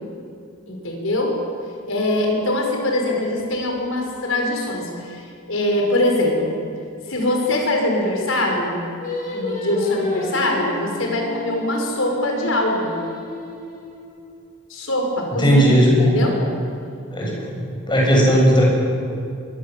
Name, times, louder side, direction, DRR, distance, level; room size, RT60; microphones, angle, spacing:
voice 1, 0.7-1.3 1.9-6.6 7.1-8.8 9.3-12.9 14.7-16.4, left 1 dB, 70° left, 1 dB, 6.2 m, -22 dB
Singing, 9.0-14.3, left 1 dB, 40° left, 7.8 m, -31 dB
voice 2, 15.4-16.3 17.1-17.6 17.9-18.6, equal, 25° left, -2 dB, 7.5 m, -16 dB
25.5 x 23.0 x 7.9 m, 2.5 s
head